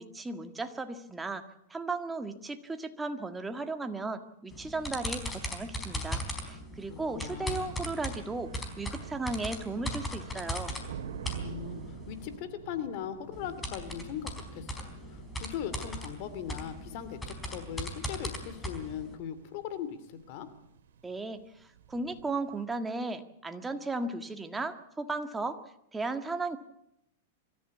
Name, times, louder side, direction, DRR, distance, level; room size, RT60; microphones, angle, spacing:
voice 1, 0.0-1.4 1.7-10.8 21.0-25.6 25.9-26.6, right 3 dB, 10° right, 7 dB, 1.7 m, -36 dB
sound 1, 4.5-12.4 13.3-19.2, left 1 dB, 10° left, 4.2 m, -39 dB
sound 2, 6.8-22.6, right 8 dB, 80° right, 2.2 m, -48 dB
voice 2, 6.9-7.6 11.4-11.8 12.1-20.5, left 9 dB, 50° left, 12 dB, 2.7 m, -39 dB
25.5 x 14.0 x 8.4 m, 0.80 s
supercardioid pair, 140°, 0 cm